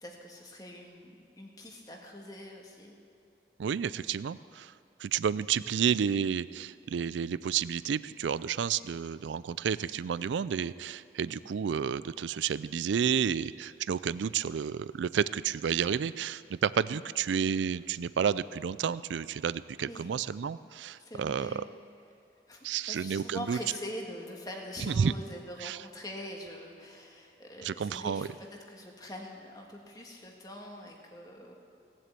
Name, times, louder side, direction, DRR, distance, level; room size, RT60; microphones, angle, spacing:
voice 1, 0.0-2.9 11.2-11.4 16.9-17.0 19.8-20.1 21.0-21.6 22.5-31.5, left 1 dB, 20° left, 0 dB, 1.7 m, -44 dB
voice 2, 3.6-4.7 5.0-21.6 22.6-23.6 24.8-25.1 25.6-25.8 27.6-28.3, right 7 dB, 85° right, 17 dB, 0.4 m, -31 dB
18.0 x 7.7 x 8.3 m, 2.7 s
head